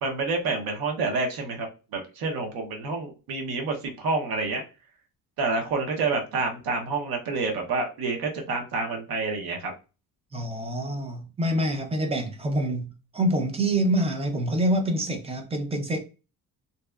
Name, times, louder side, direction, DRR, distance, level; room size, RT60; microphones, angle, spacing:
voice 1, 0.0-4.6 5.4-9.7, right 3 dB, 80° right, 0.8 m, -28 dB
voice 2, 10.3-16.0, right 1 dB, 20° right, 0.4 m, -26 dB
2.7 x 2.1 x 2.2 m
cardioid pair, 135°, 35 cm